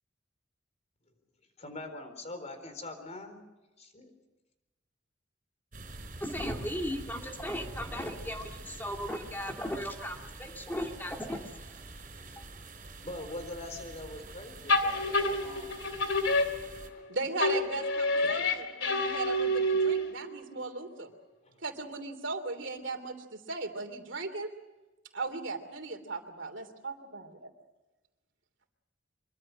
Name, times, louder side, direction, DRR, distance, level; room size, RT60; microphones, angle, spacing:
voice 1, 1.6-3.4 3.8-4.1 13.0-15.8 18.2-18.5 21.4-21.6, left 2 dB, 35° left, 8 dB, 4.1 m, -43 dB
sound 1, 5.7-16.9, right 2 dB, 45° right, 4.4 m, -46 dB
voice 2, 6.2-11.7 12.3-12.4, equal, 10° left, 2 dB, 2.1 m, -37 dB
sound 2, 14.7-17.1 17.4-20.2, left 1 dB, 75° left, 2.8 m, -28 dB
voice 3, 17.1-21.1 21.6-24.5 25.1-27.5, right 3 dB, 70° right, 7 dB, 3.0 m, -37 dB
25.0 x 24.0 x 6.5 m, 1.1 s
head